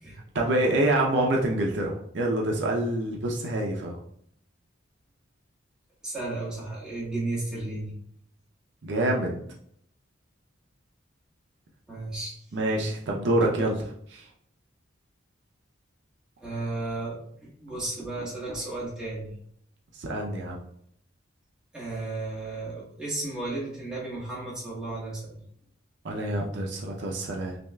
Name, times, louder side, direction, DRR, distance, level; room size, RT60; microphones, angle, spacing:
voice 1, 0.3-4.0 8.8-9.4 12.5-13.7 14.1-14.3 19.9-20.6 26.0-27.6, right 1 dB, 60° right, -1 dB, 0.5 m, -26 dB
voice 2, 6.0-7.9 11.9-12.4 13.4-13.5 16.4-17.2 17.6-19.3 21.7-25.4, right 2 dB, 5° right, -7 dB, 1.2 m, -33 dB
6.0 x 2.3 x 2.2 m, 0.68 s
head